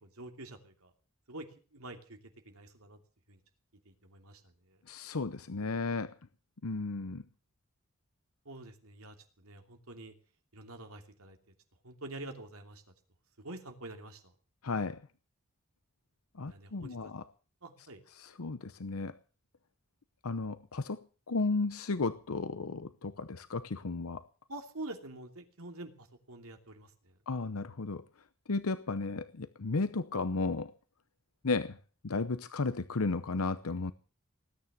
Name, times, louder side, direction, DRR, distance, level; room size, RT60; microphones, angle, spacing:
voice 1, 0.0-0.9 1.3-1.5 1.7-2.2 2.5-3.0 3.3-3.4 3.8-4.4 4.7-4.8 8.4-10.1 10.5-11.4 11.8-12.8 13.4-14.2 16.5-17.1 17.6-18.0 24.5-27.1, right 2 dB, 90° right, 2.9 m, -46 dB
voice 2, 4.9-6.1 6.6-7.2 14.6-15.0 16.3-17.3 18.2-19.2 20.2-24.2 27.3-28.0 28.5-30.7 31.4-31.8 32.0-33.9, left 3 dB, 85° left, 0.8 m, -34 dB
19.5 x 9.8 x 7.5 m
head